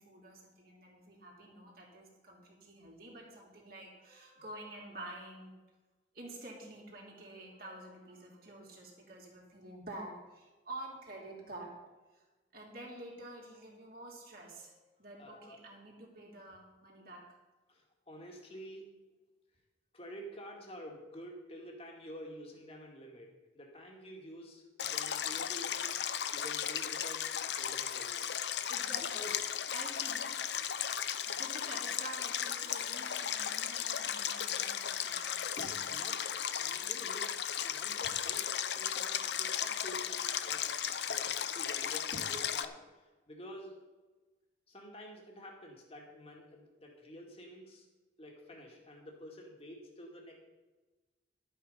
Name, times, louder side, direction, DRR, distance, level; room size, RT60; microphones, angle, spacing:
voice 1, 0.0-5.5 6.1-11.7 12.5-17.4 28.7-29.3 29.7-30.3 31.3-35.3, right 1 dB, 50° right, -2 dB, 3.0 m, -49 dB
voice 2, 15.2-15.6 17.7-19.0 19.9-25.9 26.3-27.3 27.6-28.3 29.1-29.3 35.6-43.8 44.7-47.9 48.2-50.4, equal, 30° left, 0 dB, 2.2 m, -49 dB
Stream, 24.8-42.6, left 9 dB, 65° left, 0.6 m, -35 dB
12.0 x 8.7 x 5.6 m, 1.2 s
head